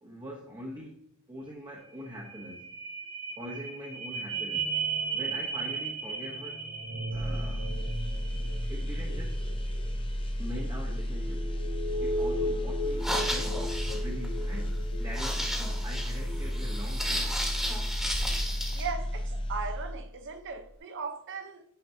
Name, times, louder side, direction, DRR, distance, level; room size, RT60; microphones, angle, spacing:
voice 1, 0.0-1.0 1.3-2.6 3.4-4.7 5.1-6.6 7.1-7.7 8.7-9.4 10.4-11.5 12.0-15.5 15.8-17.4 18.0-18.1, equal, 20° right, 1.1 m, -43 dB
sound 1, 1.5-1.6 1.8-17.8 18.3-18.4, right 2 dB, 80° right, 2.1 m, -36 dB
sound 2, 7.1-20.2 20.6-20.8, equal, 25° left, 0.7 m, -33 dB
phlegm being vacumed from tracheostomy (breathing hole), 12.9-18.9, equal, ahead, 1.4 m, -34 dB
voice 2, 18.7-21.6, right 5 dB, 55° right, 0.9 m, -37 dB
9.3 x 5.1 x 2.8 m
head